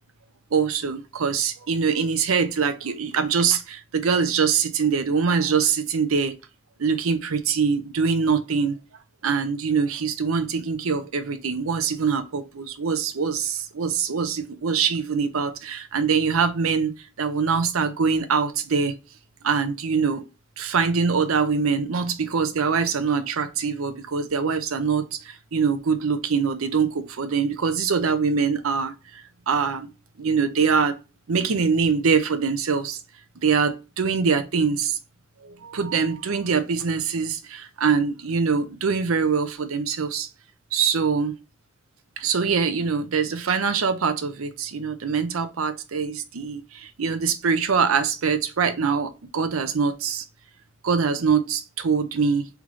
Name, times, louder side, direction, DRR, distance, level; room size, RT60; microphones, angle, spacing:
voice 1, 0.5-6.3 6.8-8.8 9.2-19.0 19.4-20.2 20.6-29.9 30.2-31.0 31.3-33.0 33.4-35.0 35.4-40.3 40.7-41.3 42.2-50.2 50.8-52.5, right 5 dB, 90° right, 0.6 m, -23 dB
3.7 x 3.5 x 3.1 m
head